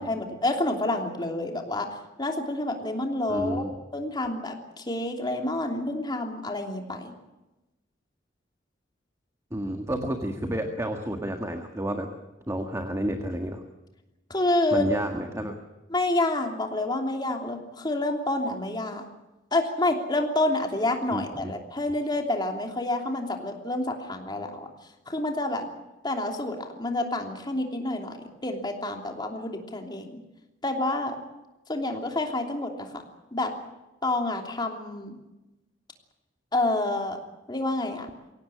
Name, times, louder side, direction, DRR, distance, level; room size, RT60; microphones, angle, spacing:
voice 1, 0.0-1.9 2.2-3.6 3.9-7.1 14.3-14.9 15.9-19.0 19.5-24.7 25.1-25.7 26.0-30.2 30.6-31.2 31.7-33.0 33.3-33.5 34.0-35.2 36.5-37.2 37.5-38.1, left 2 dB, 25° left, 3 dB, 3.1 m, -28 dB
voice 2, 3.3-3.7 9.5-12.1 12.5-13.6 14.7-15.6 21.1-21.5, right 1 dB, 15° right, 4 dB, 1.7 m, -30 dB
24.0 x 17.0 x 8.7 m, 1.0 s
head